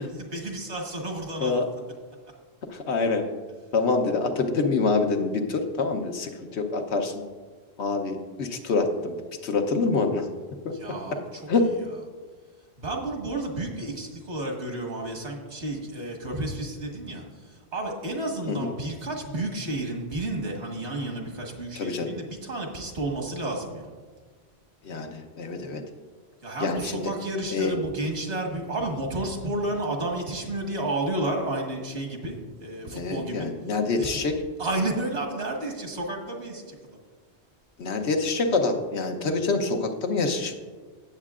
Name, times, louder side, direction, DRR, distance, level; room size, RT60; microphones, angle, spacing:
voice 1, 0.0-1.6 10.8-11.2 12.8-17.2 17.7-23.9 26.4-33.5 34.0-34.1 34.6-36.8, right 2 dB, 85° right, 1 dB, 1.9 m, -31 dB
voice 2, 2.7-3.2 3.7-7.2 7.8-10.3 10.6-10.7 11.5-11.6 18.5-18.7 21.8-22.2 24.8-25.8 26.6-27.1 27.5-27.8 32.8-34.4 37.8-40.5, left 3 dB, 85° left, 4 dB, 1.2 m, -26 dB
16.5 x 7.4 x 2.5 m, 1.5 s
omnidirectional pair, 1.1 m